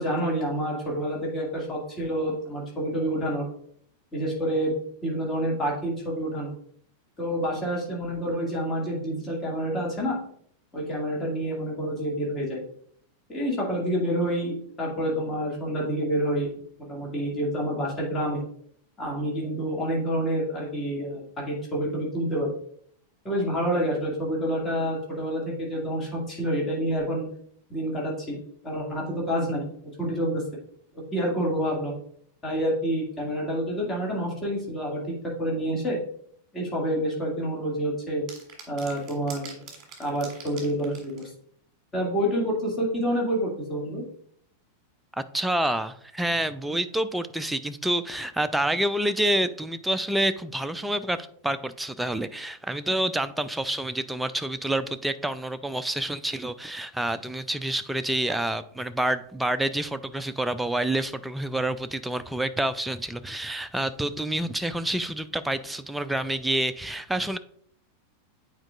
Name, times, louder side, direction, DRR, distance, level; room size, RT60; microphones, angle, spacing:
voice 1, 0.0-3.5 4.1-4.7 5.0-6.5 7.2-10.2 10.7-12.6 13.3-16.6 16.9-18.4 19.0-22.5 23.2-27.2 27.7-30.4 30.9-32.0 32.4-35.0 35.4-36.0 36.5-38.2 38.7-39.7 40.0-41.2 41.9-44.1, equal, 20° left, -3 dB, 2.2 m, -28 dB
sound 1, 38.3-41.3, right 6 dB, 30° right, 1.7 m, -43 dB
voice 2, 45.2-67.4, right 1 dB, 5° right, 11 dB, 0.4 m, -28 dB
8.8 x 4.5 x 2.5 m, 0.63 s
figure-of-eight pair, 90°, 0 cm